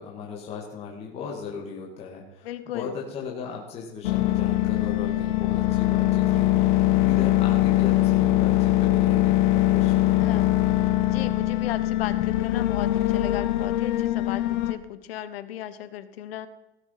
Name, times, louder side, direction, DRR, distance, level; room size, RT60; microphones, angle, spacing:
voice 1, 0.0-10.3, left 5 dB, 20° left, -3 dB, 2.2 m, -37 dB
voice 2, 2.4-3.0 10.2-10.7 11.1-16.5, left 12 dB, 70° left, 13 dB, 1.1 m, -35 dB
sound 1, 4.0-14.7, left 15 dB, 50° left, 0.9 m, -22 dB
16.5 x 7.3 x 5.7 m, 0.99 s
supercardioid pair, 165°, 31 cm